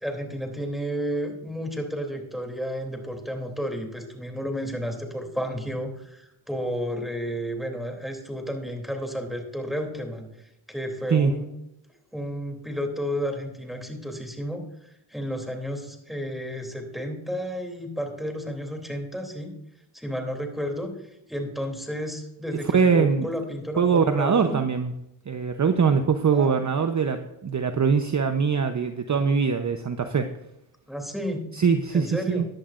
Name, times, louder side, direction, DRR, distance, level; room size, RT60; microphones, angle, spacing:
voice 1, 0.0-10.3 10.7-11.5 12.1-19.5 19.9-20.9 21.3-24.6 26.3-26.6 30.9-31.4 31.9-32.4, equal, ahead, 3 dB, 3.0 m, -32 dB
voice 2, 22.7-23.3 23.8-24.9 25.3-30.3 31.6-32.5, right 6 dB, 35° right, 7 dB, 0.8 m, -22 dB
15.5 x 10.5 x 2.5 m, 0.83 s
cardioid pair, 70°, 49 cm